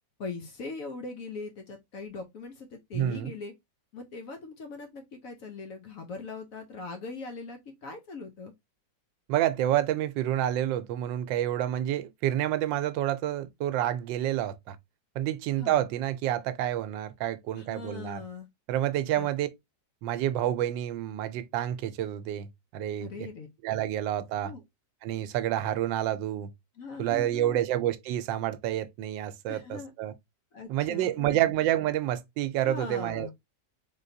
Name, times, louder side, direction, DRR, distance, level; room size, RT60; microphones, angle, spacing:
voice 1, 0.2-3.5 3.9-8.5 15.6-15.8 17.5-18.5 19.1-19.3 23.0-23.5 24.4-24.6 26.8-27.6 29.5-29.9 30.5-31.5 32.6-33.3, left 4 dB, 60° left, 0.9 m, -41 dB
voice 2, 2.9-3.3 9.3-14.8 15.2-18.2 18.7-19.5 20.0-23.3 23.6-24.5 25.0-26.5 27.0-30.1 30.7-33.3, right 12 dB, 90° right, 1.3 m, -29 dB
3.8 x 3.5 x 2.6 m
omnidirectional pair, 2.0 m